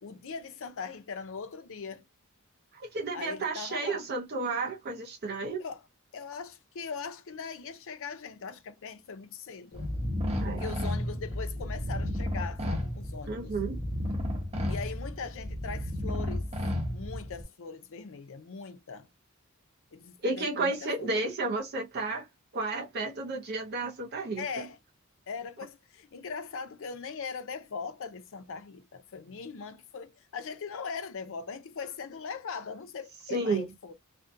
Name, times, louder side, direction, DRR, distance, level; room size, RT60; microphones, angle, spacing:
voice 1, 0.0-2.0 3.1-4.1 5.6-5.8 6.1-9.9 10.4-13.5 14.7-16.5 16.9-19.1 19.9-21.2 24.4-24.8 25.3-33.9, left 5 dB, 60° left, 0.5 m, -40 dB
voice 2, 2.7-5.6 10.4-10.6 13.3-13.8 20.2-22.3 22.5-24.7 33.3-33.7, right 3 dB, 45° right, 0.5 m, -32 dB
sound 1, 9.7-17.4, left 1 dB, 30° right, 0.9 m, -33 dB
2.5 x 2.1 x 2.5 m
head